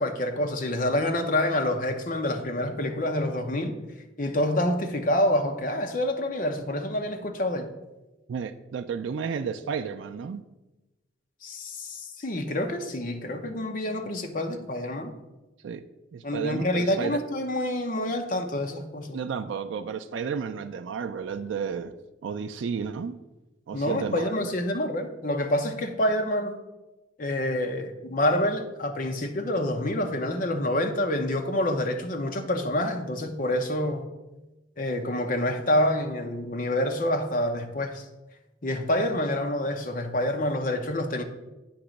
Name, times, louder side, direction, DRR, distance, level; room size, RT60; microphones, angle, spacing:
voice 1, 0.0-3.8 4.2-7.7 11.4-15.1 16.2-19.2 23.7-26.6 27.2-34.0 34.8-38.0 38.6-41.2, left 1 dB, 40° left, 5 dB, 0.7 m, -27 dB
voice 2, 8.3-10.4 15.6-15.8 16.1-17.2 19.1-21.9 22.2-23.2 23.7-24.5, right 6 dB, 70° right, 7 dB, 0.3 m, -32 dB
8.7 x 3.0 x 6.3 m, 1.0 s
head